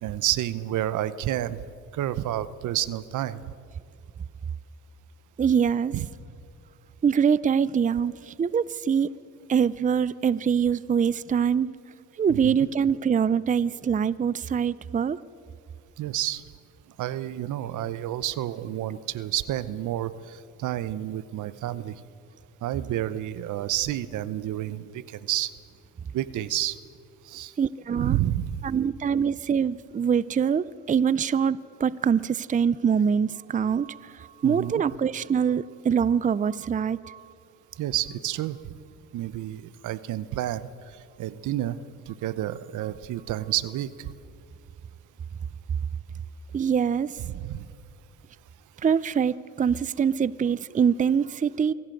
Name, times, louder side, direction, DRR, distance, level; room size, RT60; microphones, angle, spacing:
voice 1, 0.0-1.6 1.9-3.4 5.9-6.1 12.3-12.6 16.0-16.4 17.0-22.0 22.6-25.5 26.1-26.8 27.2-27.5 28.0-28.5 34.4-34.8 37.8-38.7 39.1-40.6 41.2-41.8 42.1-44.1 47.2-47.6, right 13 dB, 80° right, 16 dB, 0.9 m, -30 dB
voice 2, 5.4-6.0 7.0-9.1 9.5-11.7 12.2-15.2 27.6-28.2 28.6-37.2 46.5-47.1 48.8-51.7, right 7 dB, 25° right, 19 dB, 0.5 m, -24 dB
24.5 x 17.0 x 7.8 m, 2.4 s
cardioid pair, 90°, 30 cm